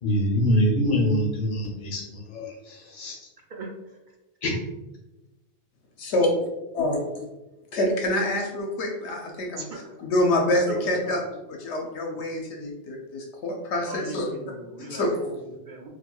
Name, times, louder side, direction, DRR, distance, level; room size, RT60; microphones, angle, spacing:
voice 1, 0.0-3.2 4.4-4.5, equal, 45° left, -3 dB, 0.9 m, -24 dB
voice 2, 3.5-4.0 9.6-9.9 10.7-11.2 12.1-12.2 13.8-15.9, right 3 dB, 55° right, 1 dB, 0.6 m, -38 dB
voice 3, 6.0-6.5 6.7-7.2 7.7-9.6 10.0-11.2 11.6-14.3 15.0-15.1, left 1 dB, 75° left, 0 dB, 0.9 m, -26 dB
4.2 x 2.5 x 2.2 m, 1.0 s
omnidirectional pair, 1.2 m